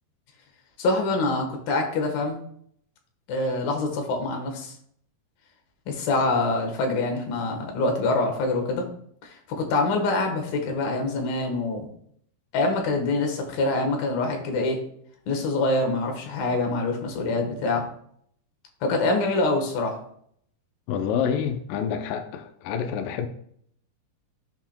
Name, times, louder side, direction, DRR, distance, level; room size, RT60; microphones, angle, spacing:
voice 1, 0.8-2.4 3.3-4.7 5.9-8.9 9.2-11.9 12.5-14.8 15.3-17.9 18.8-20.0, left 2 dB, 70° left, 2.9 m, -25 dB
voice 2, 20.9-23.3, left 7 dB, 85° left, 1.9 m, -27 dB
13.5 x 4.5 x 2.2 m
omnidirectional pair, 4.6 m